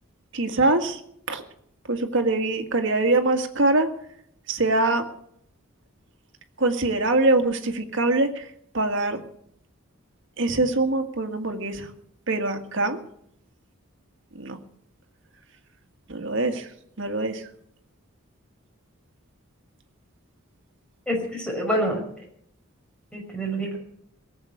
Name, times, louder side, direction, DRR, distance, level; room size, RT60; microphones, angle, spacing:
voice 1, 0.3-1.0 1.3-1.4 1.9-3.9 4.5-5.0 6.6-8.5 8.7-9.2 10.4-11.9 12.3-13.0 14.3-14.6 16.1-16.7 17.0-17.5, right 2 dB, 65° right, 6 dB, 1.9 m, -23 dB
voice 2, 21.1-22.0 23.1-23.8, equal, 5° left, 0 dB, 5.3 m, -26 dB
18.5 x 8.0 x 9.4 m, 0.70 s
head